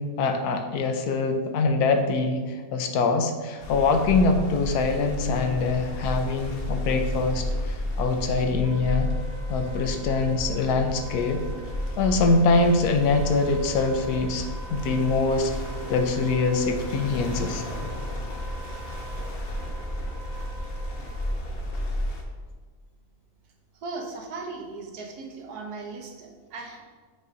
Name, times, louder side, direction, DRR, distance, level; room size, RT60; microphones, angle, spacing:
voice 1, 0.0-9.1 9.5-11.5 12.0-15.5 15.9-17.6, left 3 dB, 80° left, 6 dB, 1.2 m, -24 dB
sound 1, 3.6-22.2, left 1 dB, 45° left, 0.9 m, -32 dB
Wind instrument woodwind instrument, 8.6-21.3, right 2 dB, 50° right, 1.8 m, -46 dB
voice 2, 23.7-26.8, right 3 dB, 85° right, 3 dB, 1.4 m, -37 dB
5.6 x 4.1 x 5.0 m, 1.4 s
omnidirectional pair, 1.6 m